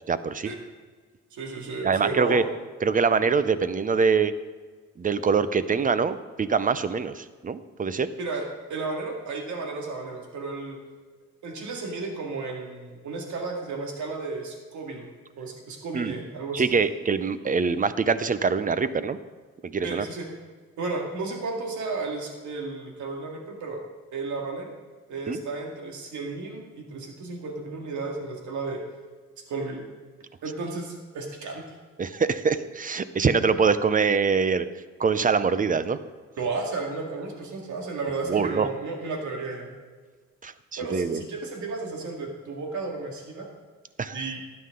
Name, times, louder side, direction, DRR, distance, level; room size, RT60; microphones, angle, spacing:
voice 1, 0.1-0.5 1.8-2.4 2.8-4.3 5.0-8.1 15.9-16.1 16.5-19.2 19.6-20.1 25.3-25.4 32.0-34.7 35.0-36.0 38.3-38.7 40.4-41.2 44.0-44.2, right 5 dB, 25° right, 14 dB, 0.6 m, -24 dB
voice 2, 1.3-2.5 8.2-10.8 11.4-15.1 15.4-16.7 19.8-20.3 20.8-23.8 24.1-24.7 25.1-28.8 29.5-29.8 30.4-31.7 36.4-39.7 40.8-43.5 44.1-44.4, right 3 dB, 70° right, 1 dB, 2.2 m, -33 dB
12.5 x 9.7 x 3.8 m, 1.4 s
cardioid pair, 90°, 30 cm